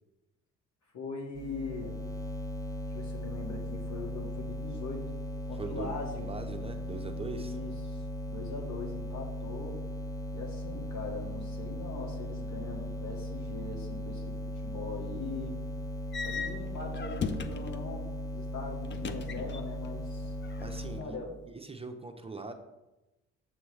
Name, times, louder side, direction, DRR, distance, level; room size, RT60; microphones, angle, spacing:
voice 1, 0.9-2.0 2.9-5.1 5.5-6.3 7.4-9.8 10.3-14.4 14.6-15.6 16.2-18.1 18.3-20.3 21.0-21.3, left 3 dB, 70° left, -1 dB, 1.9 m, -41 dB
sound 1, 1.3-21.0, left 1 dB, 10° left, 0.9 m, -37 dB
voice 2, 5.5-5.9 6.2-7.6 20.4-22.5, right 3 dB, 20° right, 5 dB, 0.6 m, -41 dB
sound 2, 16.1-17.9 18.8-19.9 20.2-21.0, left 5 dB, 40° left, 0.6 m, -38 dB
7.0 x 6.8 x 3.2 m, 1.0 s
cardioid pair, 90°, 30 cm